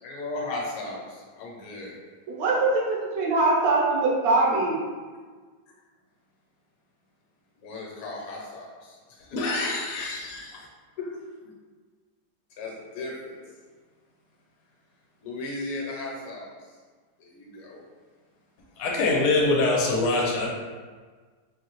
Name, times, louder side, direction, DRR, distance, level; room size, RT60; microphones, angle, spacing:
voice 1, 0.0-2.0 7.6-9.6 10.0-10.1 10.5-10.7 11.0-11.2 11.4-11.5 12.6-13.4 15.2-16.5 17.2-17.8, left 2 dB, 65° left, -2 dB, 1.3 m, -36 dB
voice 2, 2.3-4.8, right 3 dB, 65° right, -3 dB, 1.2 m, -22 dB
voice 3, 9.3-10.5 18.8-20.5, left 2 dB, 80° left, -2 dB, 1.3 m, -24 dB
4.1 x 2.7 x 3.0 m, 1.5 s
omnidirectional pair, 1.7 m